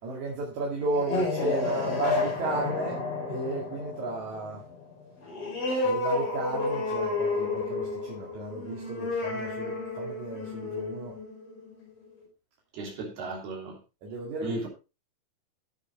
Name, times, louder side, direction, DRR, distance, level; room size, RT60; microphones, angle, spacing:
voice 1, 0.0-4.6 5.8-11.2 14.0-14.7, right 2 dB, 55° right, 3.2 m, -34 dB
sound 1, 0.8-12.0, left 3 dB, 45° left, 6.0 m, -31 dB
voice 2, 12.7-13.8 14.4-14.7, right 3 dB, 85° right, 5.4 m, -35 dB
15.0 x 7.1 x 3.3 m
omnidirectional pair, 4.4 m